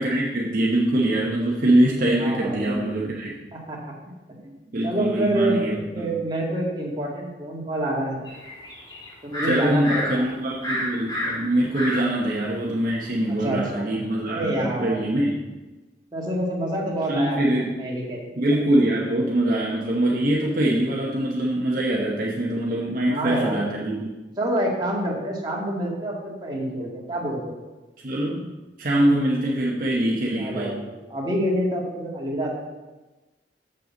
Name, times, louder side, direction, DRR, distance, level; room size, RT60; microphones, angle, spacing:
voice 1, 0.0-3.4 4.7-6.1 9.5-15.4 17.1-17.7 18.4-24.1 28.0-28.5 28.8-30.8, right 1 dB, 50° right, -3 dB, 1.0 m, -23 dB
voice 2, 2.2-2.9 3.5-3.8 4.3-4.5 4.8-5.6 5.9-8.2 9.2-10.2 13.3-15.0 16.1-18.4 23.1-23.6 24.4-27.6 30.4-32.5, right 1 dB, 25° right, -3 dB, 2.0 m, -27 dB
sound 1, 8.3-10.1 10.6-12.0 12.5-12.6, equal, 25° left, 2.9 m, -29 dB
6.8 x 6.8 x 7.1 m, 1.2 s
head